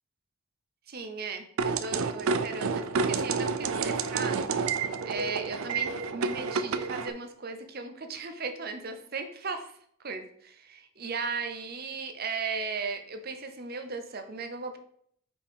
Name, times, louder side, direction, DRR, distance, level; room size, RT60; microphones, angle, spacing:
voice 1, 0.9-4.5 5.1-9.7 10.0-14.8, right 4 dB, 45° right, 7 dB, 0.8 m, -36 dB
sound 1, 1.6-7.1, right 5 dB, 80° right, 0.5 m, -29 dB
5.2 x 5.0 x 5.1 m, 0.66 s
head